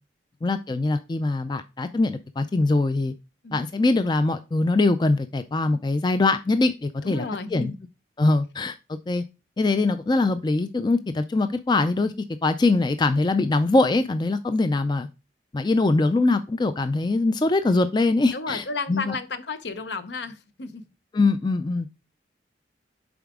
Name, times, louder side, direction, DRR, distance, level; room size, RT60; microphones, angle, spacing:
voice 1, 0.4-3.1 3.5-7.3 7.5-7.7 8.2-9.2 9.6-12.1 12.4-15.1 15.5-19.2 21.1-21.9, left 2 dB, 25° left, 0.3 m, -22 dB
voice 2, 7.0-7.8 18.3-20.8, left 3 dB, 70° left, 0.7 m, -32 dB
7.1 x 4.8 x 3.6 m
head